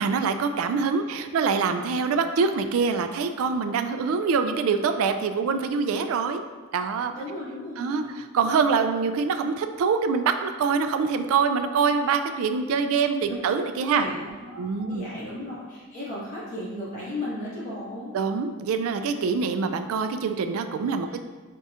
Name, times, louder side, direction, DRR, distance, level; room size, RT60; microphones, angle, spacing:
voice 1, 0.0-6.4 6.7-7.1 7.8-14.0 14.6-15.1 18.1-21.2, right 5 dB, 75° right, 8 dB, 0.3 m, -25 dB
voice 2, 7.1-8.2 13.3-13.4 13.9-18.1 21.0-21.1, left 1 dB, 35° left, -9 dB, 1.4 m, -36 dB
4.5 x 4.1 x 2.4 m, 1.4 s
head